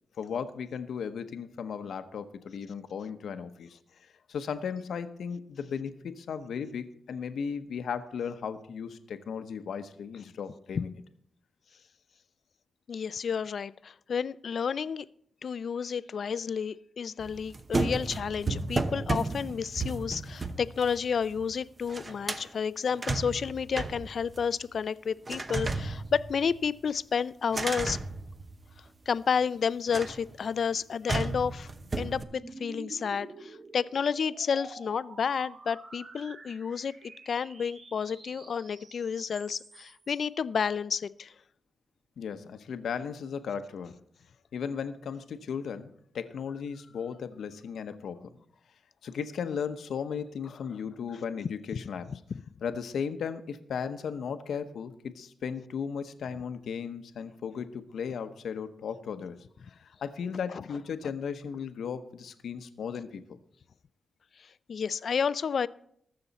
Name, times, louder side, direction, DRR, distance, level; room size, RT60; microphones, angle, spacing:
voice 1, 0.2-3.8 4.3-11.0 42.2-43.9 44.5-48.3 49.0-52.1 52.6-59.4 59.8-63.4, left 6 dB, 80° left, 9 dB, 0.9 m, -36 dB
voice 2, 12.9-15.1 15.4-28.0 29.1-31.7 32.0-41.3 52.1-52.2 60.5-60.6 64.7-65.7, left 6 dB, 65° left, 17 dB, 0.4 m, -31 dB
sound 1, 17.2-21.6 21.8-22.5 22.9-24.8 25.3-26.8 27.5-29.0 29.9-30.3 31.1-32.2, right 3 dB, 35° right, 0.9 m, -34 dB
sound 2, 30.6-40.1, right 3 dB, 60° right, 1.7 m, -49 dB
20.5 x 6.9 x 4.1 m, 0.70 s
cardioid pair, 90°, 0 cm